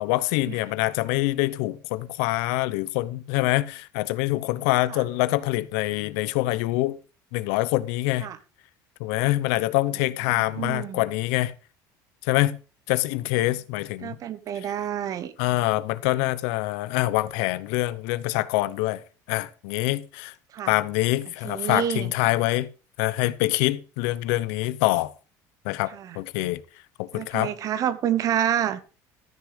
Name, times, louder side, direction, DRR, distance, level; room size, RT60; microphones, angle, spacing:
voice 1, 0.0-7.0 7.3-8.3 9.0-11.5 12.2-12.6 12.9-14.2 15.4-19.0 19.3-20.3 20.7-22.7 23.0-25.1 25.6-26.6 27.0-27.5, left 18 dB, 90° left, 0.8 m, -25 dB
voice 2, 10.3-11.0 14.0-15.6 20.5-20.7 21.4-22.1 25.9-26.2 27.1-28.8, right 10 dB, 45° right, 1.1 m, -28 dB
13.5 x 6.3 x 5.1 m
cardioid pair, 120°, 8 cm